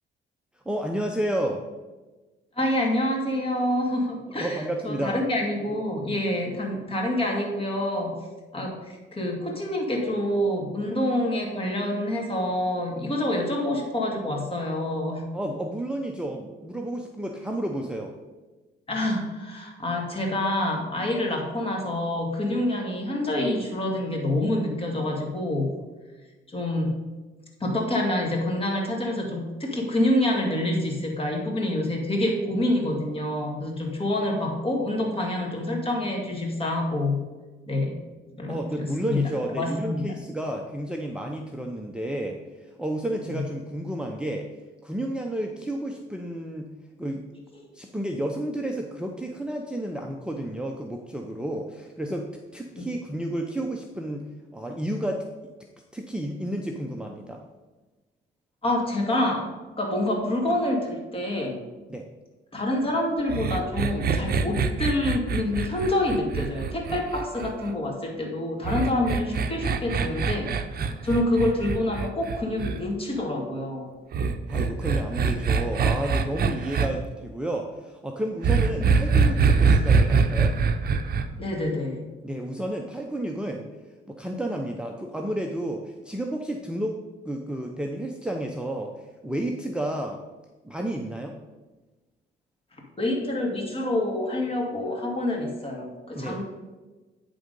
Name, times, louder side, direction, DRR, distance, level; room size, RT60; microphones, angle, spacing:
voice 1, 0.7-1.6 4.4-5.2 15.3-18.2 38.5-44.5 44.8-46.7 47.0-47.2 47.7-54.2 54.5-55.2 55.9-57.4 61.9-62.0 74.5-80.6 82.2-83.6 84.1-87.0 87.3-90.2 90.6-91.3 96.1-96.4, right 1 dB, 5° right, 1 dB, 0.6 m, -31 dB
voice 2, 2.6-8.2 8.5-15.3 18.9-25.7 26.5-26.9 27.6-37.2 37.7-38.0 38.4-39.3 39.6-40.1 43.2-43.3 52.7-52.9 58.6-59.5 59.8-61.6 62.5-70.5 71.0-73.9 81.4-82.1 93.0-96.4, left 1 dB, 30° left, 0 dB, 2.1 m, -27 dB
sound 1, 63.3-67.7 68.6-72.8 74.1-76.9 78.4-81.2, right 5 dB, 50° right, 0.7 m, -23 dB
9.3 x 3.7 x 5.3 m, 1.2 s
cardioid pair, 90°, 20 cm